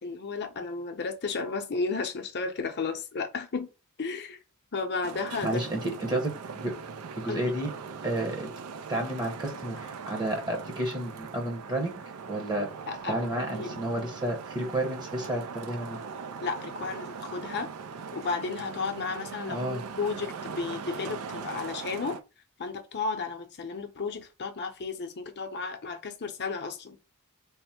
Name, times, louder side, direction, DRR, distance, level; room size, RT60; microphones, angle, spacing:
voice 1, 0.0-3.7 4.0-4.4 4.7-5.6 7.3-7.5 12.9-13.2 13.5-13.8 16.4-17.7 18.1-22.2 22.6-27.0, left 4 dB, 50° left, 0.7 m, -33 dB
Traffic noise roadway noise, 5.0-22.2, right 5 dB, 80° right, 0.5 m, -40 dB
voice 2, 5.4-6.3 6.6-6.8 7.2-7.7 8.0-8.5 8.9-12.0 12.3-12.7 13.1-16.0 19.5-19.8, right 1 dB, 20° right, 0.8 m, -31 dB
3.5 x 2.1 x 4.2 m
head